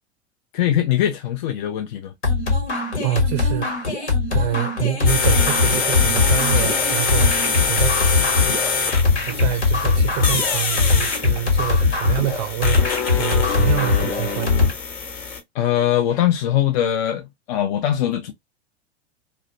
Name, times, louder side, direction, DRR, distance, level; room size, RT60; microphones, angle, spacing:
voice 1, 0.5-2.1 15.5-18.3, left 11 dB, 45° left, 0.4 m, -21 dB
sound 1, 2.2-14.7, left 4 dB, 85° left, 1.2 m, -21 dB
voice 2, 3.0-4.0 4.3-7.3 7.7-7.9 9.3-14.6, right 13 dB, 45° right, 0.4 m, -26 dB
sound 2, 5.1-15.4, left 5 dB, 30° left, 0.9 m, -25 dB
2.3 x 2.1 x 2.5 m
figure-of-eight pair, 90°, 33 cm